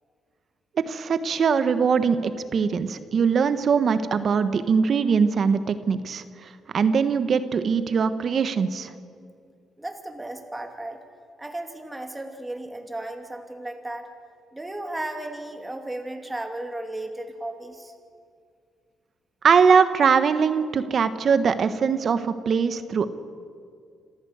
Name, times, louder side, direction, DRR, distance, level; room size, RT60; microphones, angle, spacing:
voice 1, 0.9-6.5 6.7-8.9 19.4-23.1, right 6 dB, 50° right, 12 dB, 1.3 m, -22 dB
voice 2, 9.8-11.0 11.4-14.1 14.5-17.9, right 1 dB, 10° right, 4 dB, 2.7 m, -35 dB
27.0 x 14.0 x 8.1 m, 2.3 s
cardioid pair, 90°, 0 cm